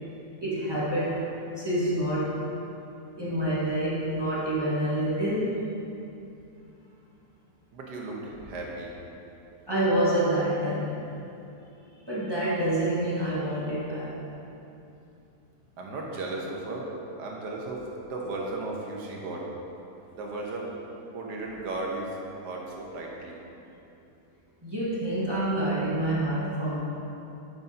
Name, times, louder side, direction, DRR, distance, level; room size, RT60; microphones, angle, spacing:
voice 1, 0.4-1.2 1.6-2.3 3.2-5.5 9.7-11.1 12.0-14.2 24.6-26.8, right 1 dB, 15° right, -10 dB, 1.4 m, -27 dB
voice 2, 7.7-8.9 15.8-16.9 17.2-17.8 18.1-19.4 20.1-20.7 21.1-22.1 22.4-23.4, right 2 dB, 85° right, -2 dB, 1.6 m, -35 dB
8.9 x 6.7 x 2.7 m, 2.8 s
omnidirectional pair, 1.8 m